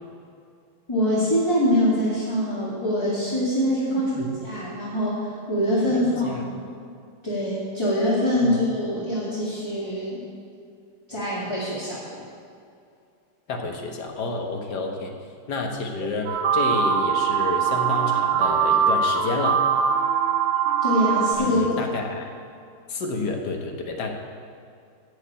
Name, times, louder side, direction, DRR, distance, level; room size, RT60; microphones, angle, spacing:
voice 1, 0.9-6.5 7.2-10.2 11.1-12.0 20.8-21.6, equal, 15° left, -9 dB, 2.0 m, -24 dB
voice 2, 5.9-6.4 8.4-8.6 13.5-15.1 15.5-19.6 21.4-22.2 22.9-24.1, left 3 dB, 55° left, 2 dB, 1.6 m, -30 dB
sound 1, 16.3-21.3, right 7 dB, 75° right, 1.8 m, -22 dB
13.0 x 4.9 x 8.6 m, 2.4 s
omnidirectional pair, 2.4 m